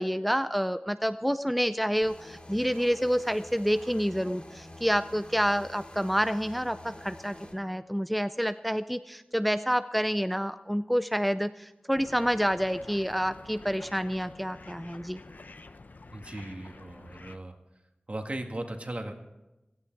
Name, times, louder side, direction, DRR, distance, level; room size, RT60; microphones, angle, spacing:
voice 1, 0.0-15.2, equal, ahead, 11 dB, 0.4 m, -28 dB
sound 1, 2.0-7.5, left 1 dB, 40° left, 3.5 m, -48 dB
sound 2, 11.9-17.4, left 3 dB, 85° left, 0.7 m, -49 dB
voice 2, 16.1-17.5 18.1-19.1, right 1 dB, 50° right, 4 dB, 1.8 m, -37 dB
16.5 x 14.5 x 4.7 m, 0.99 s
wide cardioid pair, 60°, 3 cm